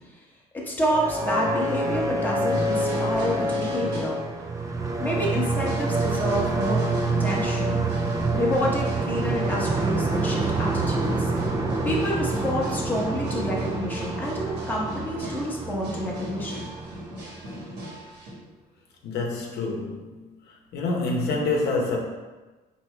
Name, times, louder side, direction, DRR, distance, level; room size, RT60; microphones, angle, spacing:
voice 1, 0.6-4.2 5.0-7.8 8.3-11.3 11.8-16.7, equal, 10° left, -3 dB, 0.9 m, -28 dB
sound 1, 0.8-17.7, right 2 dB, 20° right, 0.4 m, -27 dB
sound 2, 2.4-4.1 4.4-5.1 5.3-18.3, equal, 80° right, 1.4 m, -38 dB
voice 2, 19.0-20.2 20.5-22.0, left 3 dB, 75° left, 0 dB, 0.8 m, -27 dB
4.6 x 2.8 x 3.1 m, 1.2 s
cardioid pair, 110°, 17 cm